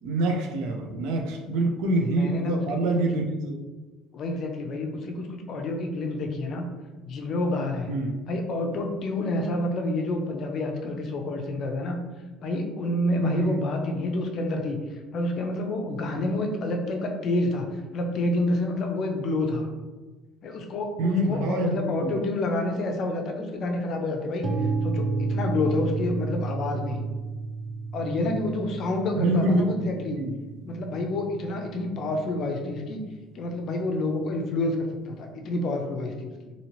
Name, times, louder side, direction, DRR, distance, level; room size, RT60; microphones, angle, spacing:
voice 1, 0.0-3.6 7.9-8.1 13.2-13.6 16.2-16.3 21.0-22.2 26.9-27.1 29.1-30.3, right 1 dB, 80° right, 2 dB, 0.5 m, -26 dB
voice 2, 2.1-2.8 4.1-6.7 7.0-7.9 8.3-12.0 12.4-17.7 17.9-19.7 20.4-24.5 24.8-27.0 27.9-30.2 30.6-33.0 33.3-36.5, left 2 dB, 40° left, 3 dB, 0.4 m, -28 dB
sound 1, 24.4-32.3, right 3 dB, 20° right, 0.4 m, -32 dB
2.8 x 2.7 x 2.9 m, 1.2 s
cardioid pair, 170°, 0 cm